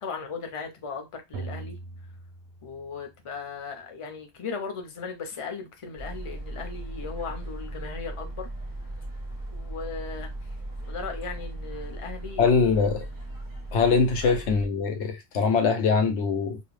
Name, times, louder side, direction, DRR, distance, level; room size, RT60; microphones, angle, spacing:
voice 1, 0.0-1.8 2.6-8.5 9.5-10.5 10.9-12.5 14.2-14.4, left 5 dB, 35° left, 0.6 m, -37 dB
sound 1, 1.3-3.3, right 3 dB, 70° right, 0.8 m, -41 dB
sound 2, 6.0-14.7, right 1 dB, 25° right, 0.6 m, -37 dB
voice 2, 12.4-13.1 13.7-16.6, left 5 dB, 90° left, 0.9 m, -23 dB
2.4 x 2.0 x 3.1 m
omnidirectional pair, 1.1 m